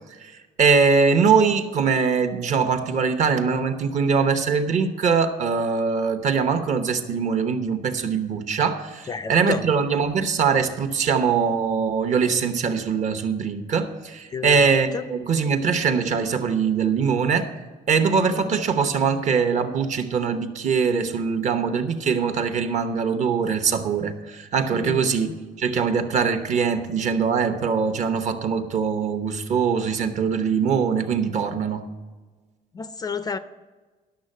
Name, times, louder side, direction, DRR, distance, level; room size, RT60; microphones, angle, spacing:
voice 1, 0.2-17.6 17.9-25.3 25.6-31.8, right 5 dB, 50° right, 8 dB, 1.0 m, -22 dB
voice 2, 9.1-9.6 14.3-14.7 14.9-15.0 18.3-18.6 24.7-25.4 32.7-33.4, left 5 dB, 25° left, 12 dB, 0.4 m, -31 dB
11.5 x 6.7 x 6.5 m, 1.3 s
cardioid pair, 160°, 16 cm